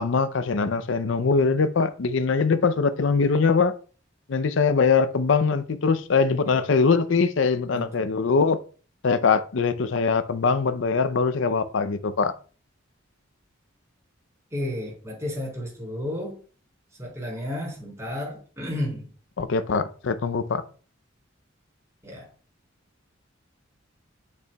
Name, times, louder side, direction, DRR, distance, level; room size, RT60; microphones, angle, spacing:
voice 1, 0.0-3.7 4.3-8.6 9.0-12.3 19.4-20.6, left 5 dB, 65° left, 0.5 m, -22 dB
voice 2, 7.7-8.0 14.5-16.4 17.0-19.1 22.0-22.3, left 1 dB, 15° right, 3.8 m, -32 dB
8.5 x 6.6 x 2.2 m
head